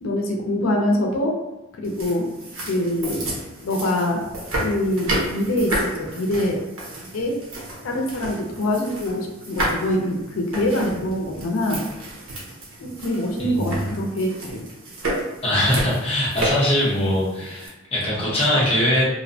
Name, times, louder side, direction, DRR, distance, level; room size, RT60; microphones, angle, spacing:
voice 1, 0.0-1.3 1.8-2.3 2.7-3.2 3.6-4.2 4.6-6.6 7.1-7.3 7.8-11.8 12.8-14.6, left 1 dB, 85° left, 1 dB, 0.4 m, -24 dB
sound 1, 1.8-17.7, right 1 dB, 90° right, 0.8 m, -31 dB
voice 2, 13.4-13.8 15.4-19.0, left 1 dB, 30° left, -6 dB, 0.7 m, -21 dB
2.4 x 2.1 x 2.6 m, 1.1 s
head